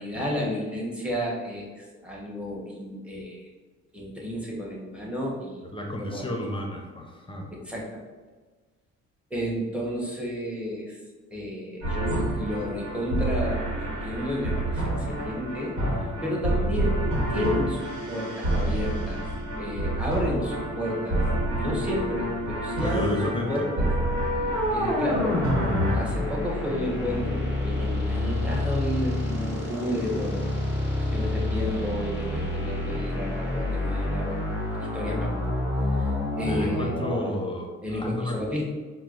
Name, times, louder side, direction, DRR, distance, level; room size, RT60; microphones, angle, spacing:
voice 1, 0.0-3.5 3.9-6.3 7.5-8.0 9.3-11.0 11.3-19.2 19.5-21.2 21.6-23.9 24.7-25.4 25.9-30.5 31.0-34.4 34.8-35.3 35.9-36.9 37.8-38.6, left 1 dB, 5° right, -4 dB, 1.0 m, -32 dB
voice 2, 5.7-7.5 22.8-23.7 36.5-38.4, left 1 dB, 15° left, 1 dB, 0.6 m, -32 dB
sound 1, 11.8-26.0, right 1 dB, 85° right, 1.0 m, -28 dB
sound 2, 23.5-37.3, left 1 dB, 40° right, 1.4 m, -28 dB
4.3 x 2.1 x 2.5 m, 1.4 s
cardioid pair, 90°, 30 cm